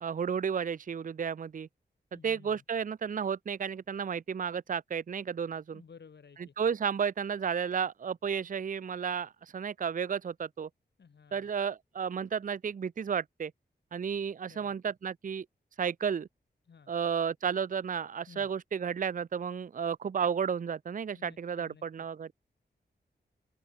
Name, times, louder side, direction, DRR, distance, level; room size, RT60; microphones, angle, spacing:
voice 1, 0.0-1.7 2.1-5.8 6.6-10.7 11.3-13.5 13.9-15.5 15.8-16.3 16.9-22.3, right 7 dB, 50° right, 0.6 m, -32 dB
voice 2, 2.1-2.6 5.7-6.5 11.0-11.5 14.4-14.9 16.7-16.9 18.3-18.5 21.1-22.1, left 6 dB, 75° left, 4.9 m, -55 dB
wide cardioid pair, 130°, 18 cm